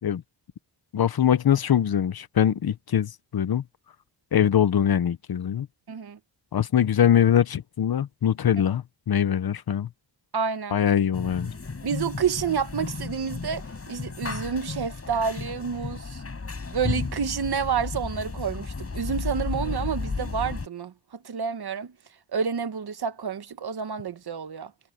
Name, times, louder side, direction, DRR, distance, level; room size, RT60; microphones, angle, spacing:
voice 1, 0.9-3.6 4.3-5.7 6.5-9.9 10.7-11.5, left 9 dB, 55° left, 0.8 m, -22 dB
voice 2, 5.9-6.2 10.3-10.8 11.8-16.2 16.7-21.9 22.3-24.7, right 6 dB, 55° right, 1.6 m, -29 dB
sound 1, 11.1-20.7, left 4 dB, 30° left, 5.1 m, -33 dB
wide cardioid pair, 150°, 45 cm